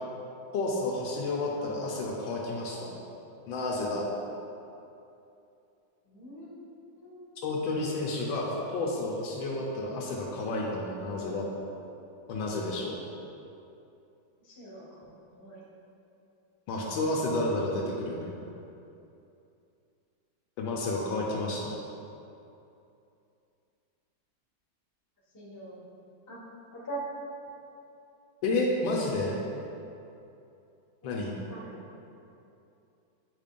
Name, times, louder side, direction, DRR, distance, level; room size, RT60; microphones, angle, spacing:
voice 1, 0.5-2.9 3.5-4.1 7.4-11.5 12.3-13.0 16.7-18.3 20.6-21.7 28.4-29.4 31.0-31.4, left 2 dB, 85° left, -2 dB, 1.4 m, -31 dB
voice 2, 6.0-6.5 7.0-7.2 14.4-15.0 15.3-15.6 21.2-21.9 25.3-25.8 26.3-26.4 26.7-27.0 31.0-31.8, right 2 dB, 10° left, -7 dB, 1.0 m, -44 dB
8.1 x 5.2 x 2.5 m, 2.7 s
omnidirectional pair, 2.1 m